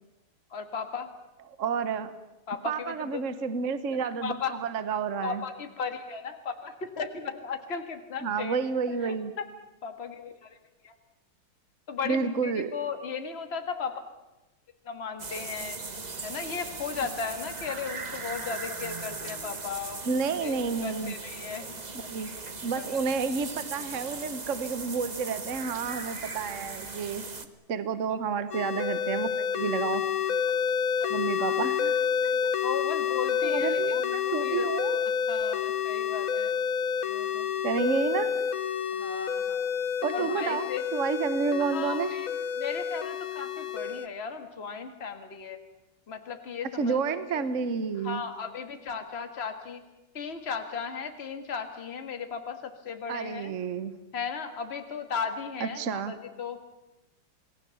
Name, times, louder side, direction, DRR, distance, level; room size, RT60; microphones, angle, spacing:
voice 1, 0.5-1.1 2.5-3.3 3.9-4.6 5.2-8.6 8.9-9.5 9.8-10.6 10.8-10.9 11.9-14.0 14.8-15.8 16.2-20.0 20.4-21.8 22.8-23.0 28.1-28.2 31.0-31.1 31.4-31.6 32.6-34.7 35.3-36.5 36.8-37.5 38.9-39.7 40.1-40.9 41.6-42.3 42.5-45.6 46.1-47.4 48.0-49.9 50.1-53.5 54.1-56.6, left 6 dB, 30° left, 6 dB, 1.9 m, -36 dB
voice 2, 1.6-2.1 2.6-4.4 4.6-5.4 8.2-9.3 12.0-12.7 20.0-21.1 22.1-22.3 22.6-27.2 27.7-29.3 29.5-30.0 31.1-32.5 33.4-35.0 37.6-38.4 40.0-42.1 46.8-48.2 53.1-53.9 55.6-56.1, right 5 dB, 45° right, 12 dB, 1.2 m, -30 dB
sound 1, 15.2-27.5, right 4 dB, 25° right, 0.9 m, -39 dB
sound 2, 28.5-44.1, left 7 dB, 50° left, 1.2 m, -29 dB
28.0 x 19.5 x 7.2 m, 1.0 s
omnidirectional pair, 2.4 m